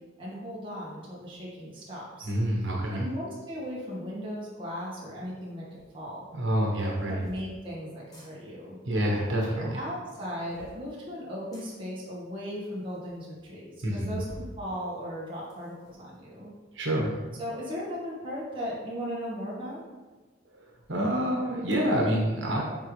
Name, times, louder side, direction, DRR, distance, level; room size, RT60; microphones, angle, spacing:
voice 1, 0.2-2.3 2.9-6.2 7.1-8.8 9.5-14.2 14.6-16.5 17.4-19.8, equal, 25° right, -6 dB, 1.7 m, -37 dB
voice 2, 2.2-3.1 6.3-7.2 8.9-9.8 13.8-14.2 16.7-17.2 20.9-22.6, equal, 75° right, -2 dB, 1.3 m, -27 dB
sound 1, 5.7-5.9 6.8-7.5 8.0-8.3 10.0-10.8 11.5-11.7 12.4-12.5 12.6-12.7 13.1-13.2 14.1-14.5 15.0-16.0, equal, 20° left, 1.3 m, -49 dB
9.1 x 3.8 x 3.3 m, 1.3 s
head